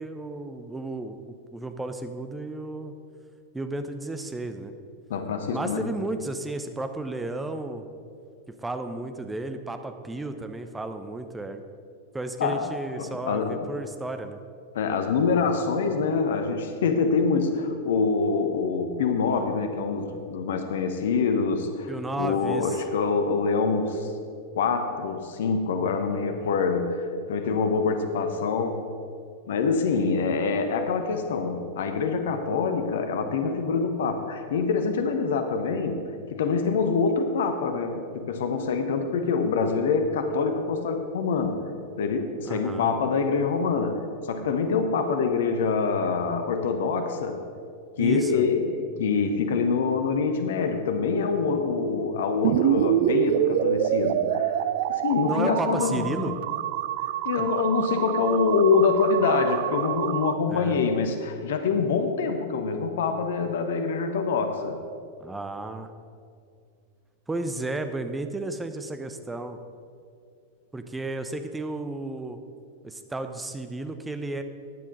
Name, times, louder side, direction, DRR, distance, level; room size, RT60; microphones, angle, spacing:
voice 1, 0.0-2.9 3.5-4.7 5.5-7.8 8.5-11.6 12.1-14.4 21.9-22.8 42.4-42.9 48.0-48.4 55.3-56.3 57.4-57.5 60.5-60.8 65.2-65.9 67.3-69.6 70.7-72.4 72.8-74.4, right 2 dB, 10° right, 8 dB, 0.9 m, -33 dB
voice 2, 5.1-5.9 12.4-12.6 13.0-13.6 14.7-21.9 22.2-24.1 24.5-27.0 27.3-28.8 29.5-36.0 36.3-41.6 42.0-47.4 48.0-54.6 54.9-56.3 57.2-64.8, left 5 dB, 60° left, 6 dB, 1.1 m, -25 dB
sound 1, 52.4-60.3, right 12 dB, 50° right, 0.4 m, -26 dB
15.0 x 10.0 x 4.0 m, 2.3 s
figure-of-eight pair, 90°, 0 cm